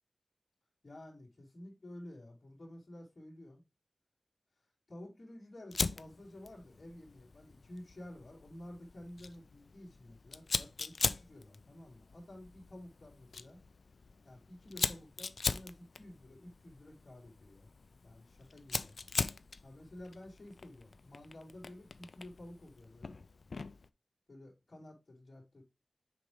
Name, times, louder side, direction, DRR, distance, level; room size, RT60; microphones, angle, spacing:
voice 1, 0.8-3.6 4.9-13.6 14.2-17.7 18.0-19.1 19.6-23.2 24.3-25.6, left 1 dB, 45° left, 2.8 m, -52 dB
Fire, 5.7-23.9, left 4 dB, 75° left, 0.4 m, -41 dB
6.9 x 5.0 x 3.1 m
wide cardioid pair, 80°, 0 cm